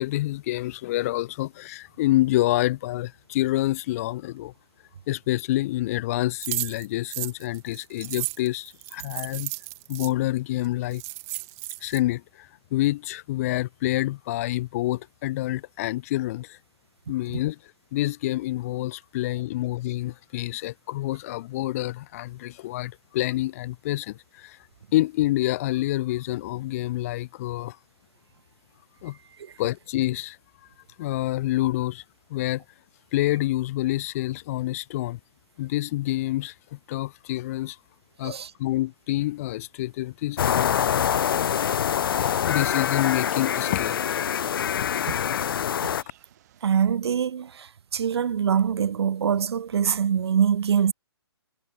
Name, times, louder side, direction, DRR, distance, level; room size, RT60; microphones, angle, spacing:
voice 1, 0.0-4.5 5.1-9.5 9.9-11.0 11.8-16.6 17.1-17.6 17.9-24.6 24.9-27.8 29.0-29.2 29.6-30.4 31.0-32.0 32.3-32.6 33.1-35.2 35.6-37.8 38.2-41.0 42.5-44.0, left 16 dB, 35° left, 1.2 m, -27 dB
sound 1, 6.4-10.1 10.6-10.7 10.9-12.0, right 27 dB, 20° right, 0.5 m, -34 dB
sound 2, 40.4-46.0, left 9 dB, 55° left, 0.5 m, -25 dB
sound 3, 41.7-46.7, right 14 dB, 40° right, 4.8 m, -54 dB
voice 2, 46.6-50.9, right 8 dB, 70° right, 0.5 m, -24 dB
hypercardioid pair, 145°, 14 cm